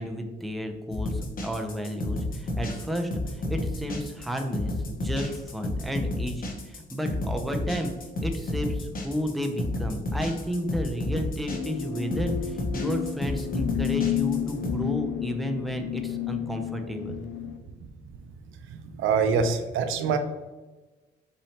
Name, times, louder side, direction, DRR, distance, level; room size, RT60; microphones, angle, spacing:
voice 1, 0.0-7.9 8.2-17.2, equal, ahead, 4 dB, 0.5 m, -32 dB
sound 1, 0.9-14.7, left 2 dB, 45° left, 0.9 m, -31 dB
sound 2, 11.5-17.6, left 12 dB, 65° left, 0.4 m, -31 dB
voice 2, 18.9-20.2, right 5 dB, 75° right, 8 dB, 0.5 m, -24 dB
3.9 x 3.2 x 2.7 m, 1.2 s
cardioid pair, 90°, 20 cm